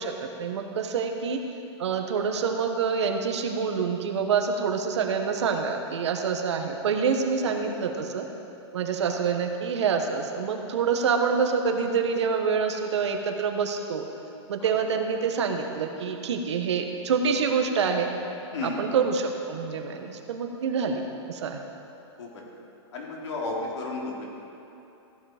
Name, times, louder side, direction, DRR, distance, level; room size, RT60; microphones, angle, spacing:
voice 1, 0.0-1.4 1.8-8.3 8.7-14.1 14.5-18.1 18.6-21.0 21.3-21.6, right 6 dB, 70° right, 5 dB, 1.3 m, -26 dB
voice 2, 22.9-24.2, left 3 dB, 75° left, -2 dB, 3.0 m, -33 dB
15.5 x 8.9 x 5.0 m, 2.9 s
supercardioid pair, 180°, 15 cm